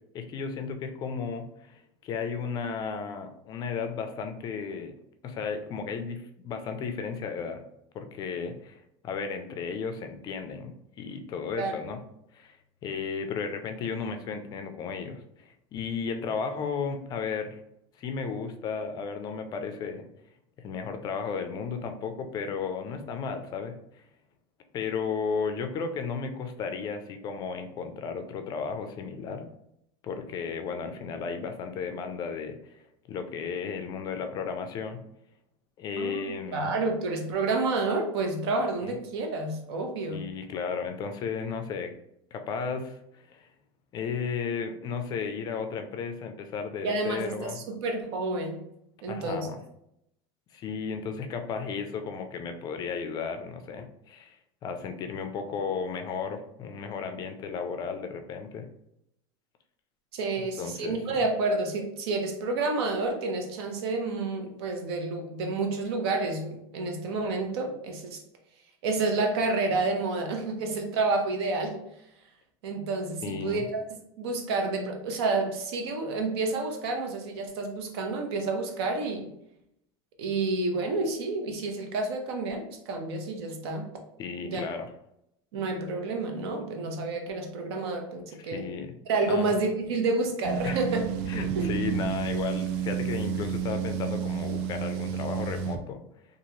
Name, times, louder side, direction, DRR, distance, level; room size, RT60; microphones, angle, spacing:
voice 1, 0.1-5.0 5.2-7.6 7.9-12.0 12.3-12.6 12.8-17.6 18.0-20.0 20.6-23.8 24.7-29.5 30.0-32.8 33.1-35.0 35.8-36.7 40.1-41.9 42.3-43.0 43.3-43.5 43.9-47.6 49.1-49.6 50.5-54.4 54.6-58.6 60.4-61.2 73.2-73.6 84.2-84.9 88.4-88.9 89.3-89.5 90.6-90.8 91.3-96.0, left 5 dB, 30° left, 7 dB, 0.4 m, -34 dB
voice 2, 36.5-40.3 46.8-48.6 49.0-49.5 60.1-68.2 68.8-71.8 72.6-73.8 74.2-79.3 80.2-83.9 84.4-84.7 85.5-88.7 89.1-91.0 91.6-91.7, right 3 dB, 75° right, 3 dB, 0.7 m, -29 dB
sound 1, 90.4-95.8, right 8 dB, 50° right, 0.4 m, -31 dB
3.0 x 2.4 x 2.7 m, 0.79 s
supercardioid pair, 145°, 13 cm